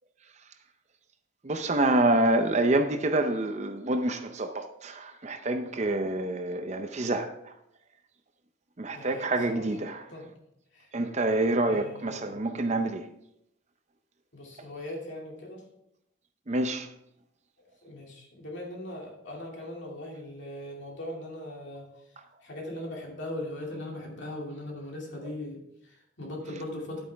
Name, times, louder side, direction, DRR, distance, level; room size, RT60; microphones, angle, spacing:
voice 1, 1.4-7.3 8.8-10.0 10.9-13.0 16.5-16.9, right 2 dB, 35° right, 0.6 m, -27 dB
voice 2, 8.9-9.8 10.1-10.3 10.7-10.9 11.7-12.4 14.3-15.6 17.8-21.9 22.4-27.0, left 1 dB, 55° left, 2.5 m, -39 dB
10.5 x 9.1 x 3.4 m
head